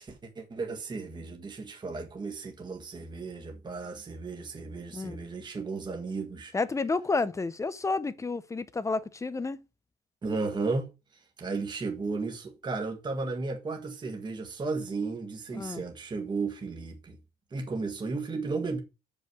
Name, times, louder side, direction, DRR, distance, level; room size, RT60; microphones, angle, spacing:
voice 1, 0.0-6.5 10.2-10.9 11.4-17.2 17.5-18.8, right 3 dB, 25° right, 1.6 m, -34 dB
voice 2, 6.5-9.6 15.5-15.8, left 3 dB, 15° left, 0.8 m, -30 dB
6.4 x 5.6 x 6.3 m
cardioid pair, 110°, 17 cm